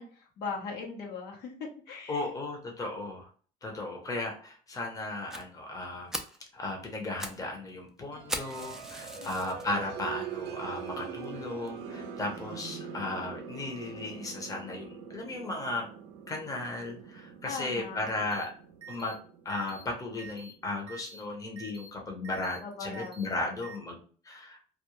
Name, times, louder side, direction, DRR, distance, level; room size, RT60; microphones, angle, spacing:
voice 1, 0.0-1.6 1.9-2.3 9.2-9.3 17.4-18.0 22.6-23.2, left 4 dB, 75° left, 0 dB, 0.8 m, -39 dB
voice 2, 2.1-3.3 3.6-6.2 6.5-15.9 16.3-18.5 18.9-19.2 19.4-24.0 24.2-24.6, left 2 dB, 20° left, 1 dB, 0.7 m, -35 dB
Fire, 5.3-5.4 5.8-5.9 6.1-6.4 6.9-7.4 7.7-7.8 8.3-9.6 10.2-10.3 10.9-11.0 11.2-11.3 11.7-11.8, right 1 dB, 5° right, 0.4 m, -38 dB
sound 1, 8.1-20.6, right 6 dB, 80° right, 0.4 m, -43 dB
sound 2, 18.3-18.4 18.8-19.1 19.5-19.8 20.2-20.5 20.9-21.2 21.6-21.9 22.2-22.6 22.9-23.2 23.6-23.7, right 6 dB, 30° right, 0.8 m, -47 dB
2.3 x 2.2 x 3.0 m, 0.43 s
cardioid pair, 110°, 17 cm